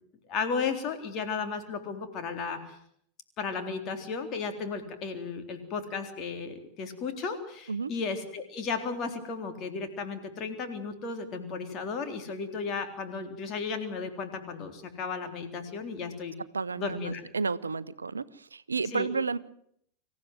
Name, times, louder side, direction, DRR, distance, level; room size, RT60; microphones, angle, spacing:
voice 1, 0.3-2.8 3.4-16.4 16.8-17.2 18.9-19.1, left 5 dB, 35° left, 6 dB, 3.7 m, -34 dB
voice 2, 16.5-19.4, right 4 dB, 75° right, 16 dB, 0.8 m, -31 dB
26.0 x 15.0 x 7.8 m, 0.68 s
figure-of-eight pair, 90°, 0 cm